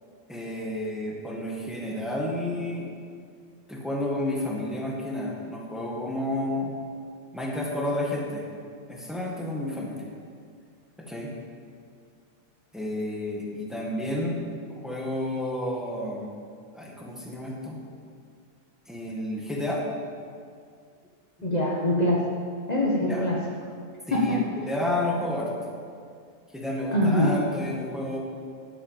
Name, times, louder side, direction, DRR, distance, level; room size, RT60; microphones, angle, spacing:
voice 1, 0.3-2.9 3.7-6.7 7.3-8.4 8.9-10.0 11.1-11.3 12.7-14.4 14.7-16.3 16.7-17.7 18.9-19.8 23.1-23.3 24.1-25.5 26.5-28.2, left 1 dB, ahead, -3 dB, 1.9 m, -31 dB
voice 2, 21.4-22.2 22.7-23.4 24.1-24.4 26.9-27.3, left 1 dB, 35° left, -4 dB, 1.5 m, -23 dB
11.0 x 8.2 x 7.5 m, 2.2 s
omnidirectional pair, 1.3 m